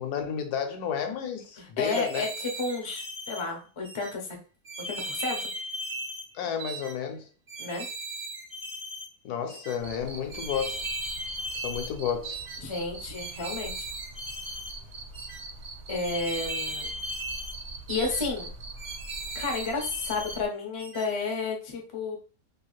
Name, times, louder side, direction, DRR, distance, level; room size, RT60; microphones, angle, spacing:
voice 1, 0.0-2.2 6.3-7.3 9.2-10.9 11.6-12.8, left 8 dB, 80° left, 1.1 m, -32 dB
voice 2, 1.6-2.3 2.6-4.3 4.9-5.4 7.6-7.9 12.6-13.8 15.9-16.9 17.9-18.5 19.3-22.2, left 3 dB, 45° left, 0.3 m, -31 dB
sound 1, 1.8-3.4 3.8-4.1 4.7-6.3 6.6-6.9 7.5-9.1 9.5-9.8 10.3-11.9 12.2-12.6 13.1-14.7 15.1-15.4 15.9-17.6 17.9-18.2 18.8-20.4 20.8-21.1, right 1 dB, 35° right, 0.3 m, -37 dB
Cricket, 9.8-20.5, right 2 dB, 70° right, 1.1 m, -42 dB
2.8 x 2.4 x 3.0 m
omnidirectional pair, 1.6 m